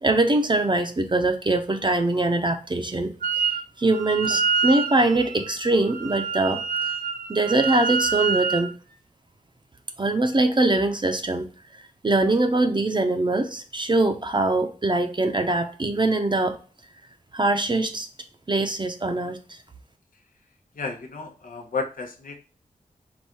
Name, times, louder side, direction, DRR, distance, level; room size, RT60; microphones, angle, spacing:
voice 1, 0.0-3.1 3.8-6.6 7.3-8.7 10.0-11.5 12.0-16.6 17.3-18.1 18.5-19.4, right 2 dB, 35° right, 5 dB, 0.6 m, -22 dB
Wind instrument woodwind instrument, 3.2-3.6 3.9-8.7, right 5 dB, 90° right, 0.6 m, -27 dB
voice 2, 20.8-22.4, left 4 dB, 85° left, 3 dB, 0.9 m, -32 dB
4.7 x 2.6 x 4.2 m, 0.37 s
wide cardioid pair, 80°, 14 cm